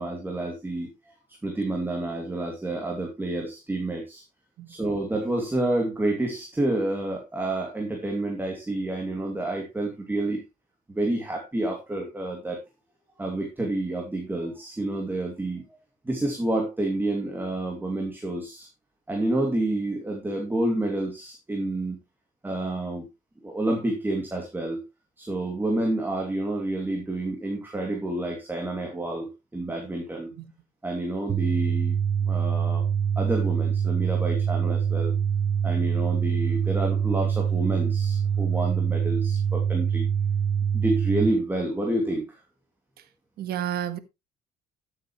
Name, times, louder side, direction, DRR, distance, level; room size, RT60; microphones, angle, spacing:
voice 1, 0.0-4.2 4.7-10.4 10.9-12.6 13.2-15.6 16.0-18.7 19.1-22.0 22.4-23.1 23.4-24.8 25.2-30.3 30.8-32.9 33.2-35.1 35.6-40.1 40.7-42.4, right 1 dB, 10° right, 2.6 m, -29 dB
sound 1, 31.3-41.3, right 7 dB, 40° right, 1.0 m, -25 dB
voice 2, 43.4-44.0, right 10 dB, 65° right, 1.5 m, -30 dB
13.5 x 7.9 x 3.1 m
cardioid pair, 110°, 17 cm